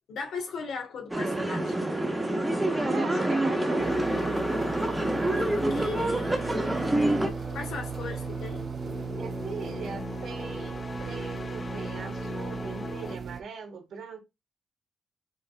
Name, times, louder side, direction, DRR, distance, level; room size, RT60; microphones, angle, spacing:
voice 1, 0.1-1.8 5.4-7.0 7.5-8.6, left 5 dB, 80° left, 1.7 m, -38 dB
sound 1, 1.1-7.3, right 1 dB, 10° right, 1.0 m, -27 dB
sound 2, 2.4-13.2, left 3 dB, 30° left, 0.5 m, -39 dB
voice 2, 2.8-4.0 9.2-14.2, right 5 dB, 70° right, 1.4 m, -39 dB
sound 3, 3.8-13.4, right 6 dB, 40° right, 0.5 m, -37 dB
5.6 x 3.4 x 2.5 m
wide cardioid pair, 145°, 0 cm